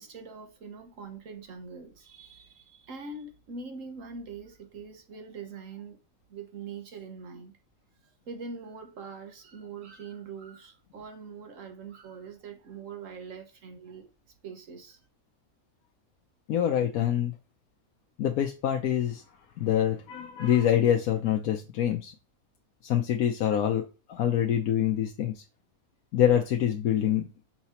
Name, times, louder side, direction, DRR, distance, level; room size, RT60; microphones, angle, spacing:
voice 1, 0.0-6.0 6.3-7.5 8.3-14.1 14.4-15.0, right 5 dB, 65° right, 1.4 m, -43 dB
voice 2, 16.5-17.3 18.2-19.2 19.6-22.1 22.8-25.4 26.1-27.3, left 10 dB, 85° left, 1.2 m, -25 dB
6.0 x 4.0 x 4.3 m
omnidirectional pair, 1.5 m